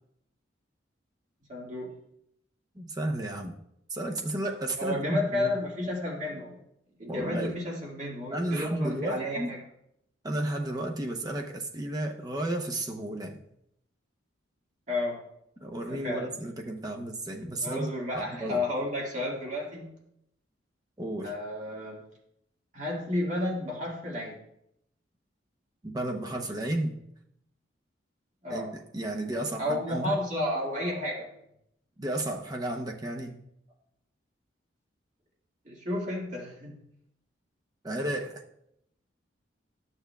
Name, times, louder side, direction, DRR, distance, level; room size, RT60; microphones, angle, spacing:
voice 1, 1.5-1.9 4.8-6.6 7.0-9.6 14.9-15.2 15.8-16.3 17.6-19.9 21.2-22.0 22.7-24.4 28.4-28.7 29.6-31.3 35.7-36.7, left 1 dB, 40° right, -3 dB, 1.9 m, -32 dB
voice 2, 2.8-3.5 3.9-5.5 7.1-7.6 8.3-9.5 10.2-13.4 15.6-18.6 21.0-21.3 25.8-27.0 28.5-30.1 32.0-33.3 37.8-38.4, right 1 dB, 20° right, 2 dB, 0.7 m, -33 dB
12.0 x 6.8 x 2.3 m, 0.77 s
head